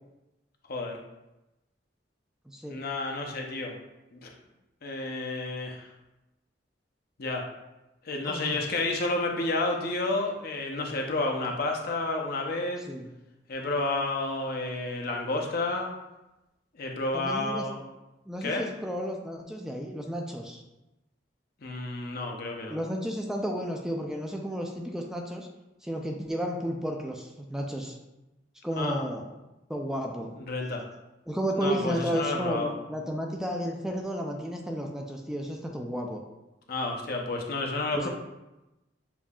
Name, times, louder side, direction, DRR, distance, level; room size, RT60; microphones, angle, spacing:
voice 1, 0.7-1.0 2.7-3.8 4.1-4.3 4.8-5.9 7.2-7.4 8.0-12.8 13.5-15.9 16.7-17.8 18.4-18.7 21.6-22.8 28.8-29.0 30.4-30.8 31.6-32.7 36.7-38.1, left 2 dB, 55° left, 1 dB, 0.7 m, -30 dB
voice 2, 2.5-2.8 8.2-8.6 12.9-13.1 17.1-17.6 18.3-20.6 22.7-25.5 25.8-28.0 28.6-29.2 29.7-30.3 31.3-36.2 37.9-38.1, equal, 5° right, 1 dB, 0.4 m, -32 dB
6.9 x 2.7 x 2.3 m, 0.98 s
head